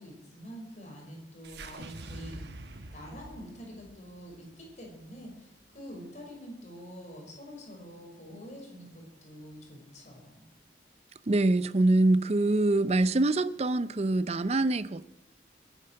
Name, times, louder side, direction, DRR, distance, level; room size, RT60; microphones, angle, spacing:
voice 1, 0.0-2.5 2.9-10.5, equal, 40° left, 5.4 m, -46 dB
sound 1, 1.4-5.8, right 2 dB, 65° right, 1.1 m, -46 dB
voice 2, 11.3-15.0, right 2 dB, 35° right, 0.5 m, -24 dB
22.0 x 9.9 x 6.4 m
head